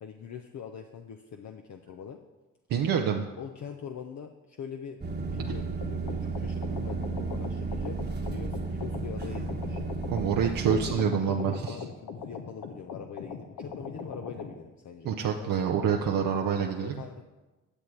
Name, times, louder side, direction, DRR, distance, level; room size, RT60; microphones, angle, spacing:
voice 1, 0.0-2.2 3.4-8.0 8.3-9.8 10.7-15.9 16.8-17.2, left 7 dB, 55° left, 5 dB, 0.7 m, -42 dB
voice 2, 2.7-3.2 10.1-11.8 15.0-17.0, right 7 dB, 70° right, 2 dB, 0.8 m, -27 dB
sound 1, 5.0-11.0, right 3 dB, 30° right, 1.2 m, -33 dB
sound 2, 5.8-14.5, left 5 dB, 70° left, 1.0 m, -41 dB
10.0 x 6.9 x 4.6 m, 1.2 s
supercardioid pair, 50°, 35 cm